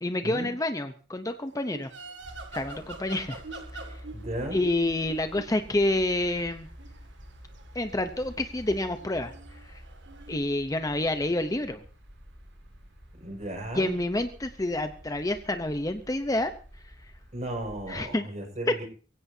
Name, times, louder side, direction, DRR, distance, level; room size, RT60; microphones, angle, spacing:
voice 1, 0.0-1.9 2.5-3.4 4.5-6.7 7.7-9.3 9.7-9.8 10.3-11.8 13.7-16.5 17.9-18.3 18.7-18.8, left 1 dB, 20° left, 8 dB, 0.8 m, -28 dB
sound 1, 1.5-10.4, right 3 dB, 70° right, 2.1 m, -46 dB
sound 2, 2.2-18.1, equal, 85° right, 7.6 m, -49 dB
voice 2, 4.1-4.6 13.2-13.9 17.3-18.8, right 1 dB, 40° right, 3 dB, 5.8 m, -35 dB
23.0 x 16.5 x 2.8 m, 0.39 s
head